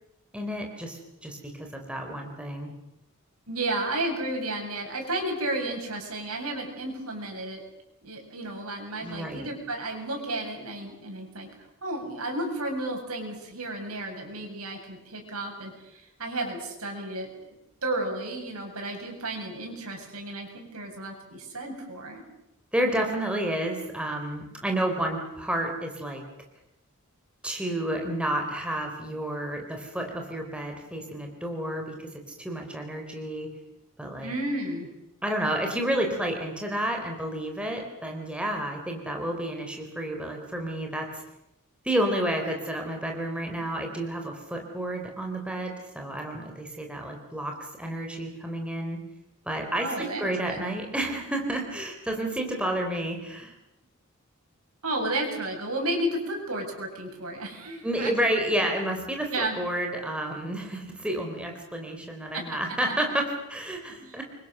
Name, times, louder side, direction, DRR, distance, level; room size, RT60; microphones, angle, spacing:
voice 1, 0.3-2.7 9.0-9.5 22.7-26.2 27.4-32.1 32.4-33.5 34.0-34.3 35.2-41.2 41.8-49.0 49.5-53.5 57.8-64.2, right 1 dB, 5° right, 2 dB, 3.8 m, -30 dB
voice 2, 3.5-7.6 8.0-11.5 11.8-17.3 17.8-22.2 34.2-34.9 49.8-50.7 54.8-58.1 59.3-59.6 62.3-62.4 64.0-64.2, right 1 dB, 80° right, 2 dB, 7.8 m, -32 dB
28.0 x 24.0 x 6.7 m, 0.84 s
head